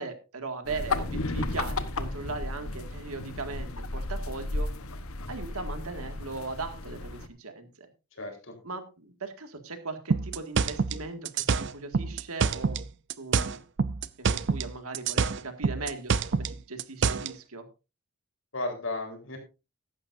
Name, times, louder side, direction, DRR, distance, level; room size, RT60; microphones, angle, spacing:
voice 1, 0.0-4.7 5.3-7.9 8.6-13.6 14.2-17.7, right 3 dB, 80° right, 7 dB, 2.0 m, -39 dB
sound 1, 0.6-7.3, left 2 dB, 75° left, 1.1 m, -34 dB
voice 2, 8.1-8.5 18.5-19.4, left 2 dB, 60° left, 3 dB, 4.0 m, -34 dB
sound 2, 10.1-12.8 13.1-14.7 14.9-17.3, right 5 dB, 55° right, 0.5 m, -26 dB
15.0 x 11.5 x 2.6 m, 0.29 s
head